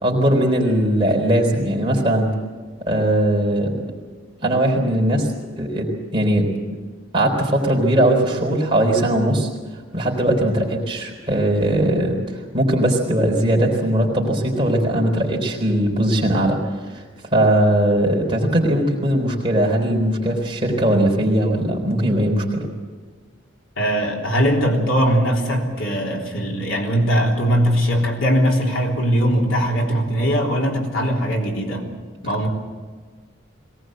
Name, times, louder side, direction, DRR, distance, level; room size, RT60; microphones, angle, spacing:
voice 1, 0.0-2.3 2.9-3.8 4.4-5.3 5.6-6.5 7.1-9.5 9.9-16.6 16.9-17.0 17.3-22.7, right 1 dB, 25° right, -1 dB, 4.1 m, -19 dB
voice 2, 23.8-31.9 32.2-32.5, equal, 80° left, 0 dB, 3.6 m, -20 dB
22.0 x 18.5 x 7.9 m, 1.5 s
head